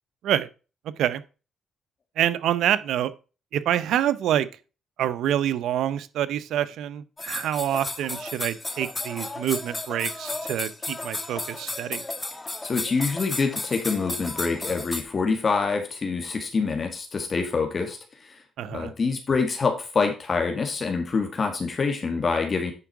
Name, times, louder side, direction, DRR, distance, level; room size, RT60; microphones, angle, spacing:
voice 1, 0.8-1.2 2.2-3.1 3.5-4.5 5.0-12.0 18.6-18.9, right 11 dB, 80° right, 0.6 m, -26 dB
sound 1, 7.2-15.0, left 2 dB, 20° left, 1.3 m, -33 dB
voice 2, 12.6-22.7, left 4 dB, 40° left, 1.7 m, -26 dB
9.9 x 4.7 x 4.6 m
cardioid pair, 90°, 0 cm